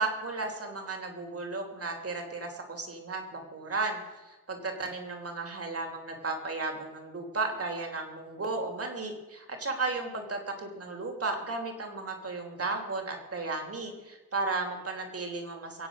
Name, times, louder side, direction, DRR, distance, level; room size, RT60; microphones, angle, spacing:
voice 1, 0.0-15.9, right 3 dB, 45° right, 3 dB, 3.4 m, -34 dB
24.0 x 8.2 x 6.1 m, 1.2 s
cardioid pair, 80°, 34 cm